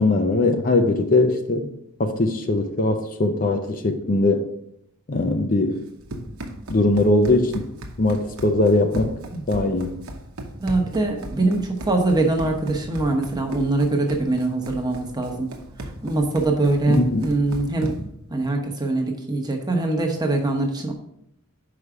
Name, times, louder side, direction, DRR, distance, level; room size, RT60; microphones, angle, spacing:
voice 1, 0.0-1.7 2.0-4.4 5.1-5.8 6.7-7.7 8.0-9.1 9.5-9.9 16.9-17.2, left 2 dB, 40° left, 6 dB, 0.6 m, -20 dB
Run, 5.7-18.2, right 1 dB, 65° right, 0.9 m, -37 dB
voice 2, 10.6-15.5 15.8-18.0 18.3-20.9, right 2 dB, 20° right, 2 dB, 0.9 m, -23 dB
5.4 x 4.9 x 4.8 m, 0.74 s
head